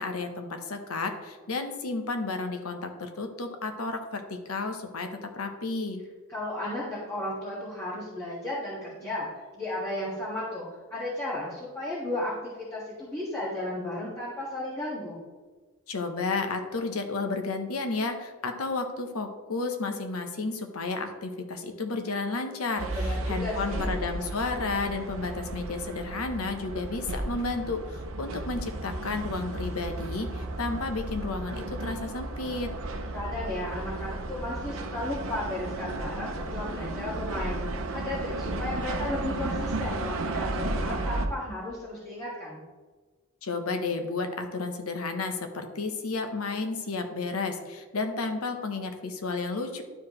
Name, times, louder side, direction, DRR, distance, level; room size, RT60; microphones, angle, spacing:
voice 1, 0.0-6.0 15.9-32.7 43.4-49.8, left 3 dB, 75° left, 6 dB, 1.0 m, -32 dB
voice 2, 6.3-9.3 9.6-10.7 10.9-15.2 22.9-23.9 33.1-37.6 37.9-42.6, left 1 dB, 15° left, -9 dB, 1.9 m, -34 dB
sound 1, 22.8-41.3, right 2 dB, 65° right, 0.8 m, -34 dB
11.5 x 4.9 x 3.2 m, 1.3 s
head